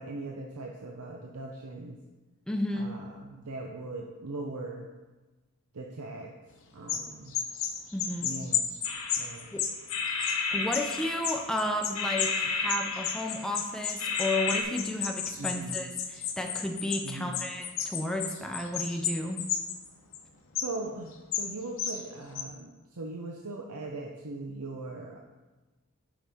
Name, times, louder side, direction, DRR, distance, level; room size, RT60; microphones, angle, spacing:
voice 1, 0.0-2.0 2.7-4.9 5.7-6.3 6.7-7.4 8.2-8.7 9.2-9.5 15.4-15.8 17.0-17.4 20.6-25.2, right 2 dB, 90° right, 0 dB, 0.7 m, -40 dB
voice 2, 2.5-2.9 7.9-8.3 9.5-9.6 10.5-19.4, left 1 dB, 5° left, 2 dB, 0.6 m, -32 dB
sound 1, 6.9-12.4 12.7-19.9 20.1-20.2 20.5-20.7 21.3-21.5 21.8-22.0 22.3-22.4, left 8 dB, 60° left, 0.8 m, -33 dB
sound 2, 8.8-9.5 9.9-11.6 11.9-13.6 14.0-14.6, left 4 dB, 85° left, 1.2 m, -32 dB
9.4 x 5.7 x 3.5 m, 1.2 s
head